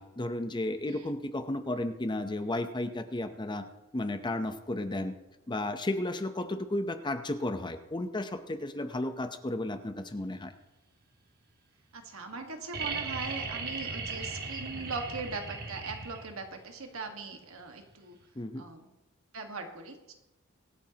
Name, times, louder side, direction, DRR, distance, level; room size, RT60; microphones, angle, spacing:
voice 1, 0.0-3.6 3.9-5.2 5.5-10.5 18.4-18.6, left 1 dB, 20° left, 9 dB, 0.7 m, -33 dB
voice 2, 11.9-18.2 18.5-18.9 19.3-20.1, right 4 dB, 70° right, 4 dB, 1.6 m, -40 dB
sound 1, 12.7-16.5 18.2-18.3, right 4 dB, 50° right, 1.6 m, -37 dB
24.0 x 9.1 x 2.9 m, 1.0 s
head